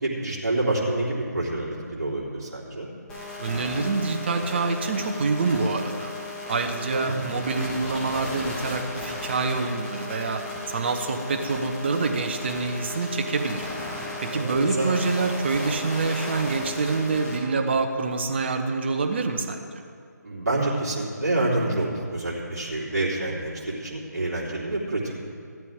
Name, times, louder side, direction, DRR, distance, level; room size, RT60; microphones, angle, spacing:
voice 1, 0.0-2.9 6.9-7.3 14.3-14.9 20.2-25.3, right 2 dB, 55° right, -6 dB, 3.3 m, -27 dB
sound 1, 3.1-17.4, left 2 dB, 10° left, 1.7 m, -35 dB
voice 2, 3.4-6.1 6.5-10.4 10.7-13.7 14.2-19.7, right 4 dB, 35° right, 5 dB, 1.0 m, -26 dB
15.5 x 12.0 x 3.7 m, 2.2 s
figure-of-eight pair, 150°, 10 cm